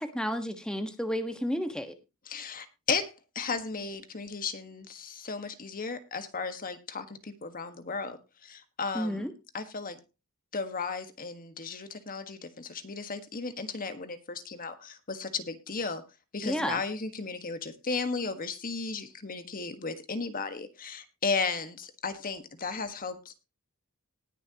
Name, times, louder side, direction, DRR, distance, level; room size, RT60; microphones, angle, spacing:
voice 1, 0.0-1.9 8.9-9.3 16.4-16.8, equal, 5° left, 6 dB, 1.3 m, -31 dB
voice 2, 2.3-8.2 8.4-9.3 9.5-10.0 10.5-16.0 16.3-23.3, left 4 dB, 40° left, 9 dB, 1.5 m, -35 dB
19.5 x 6.9 x 2.9 m, 0.26 s
head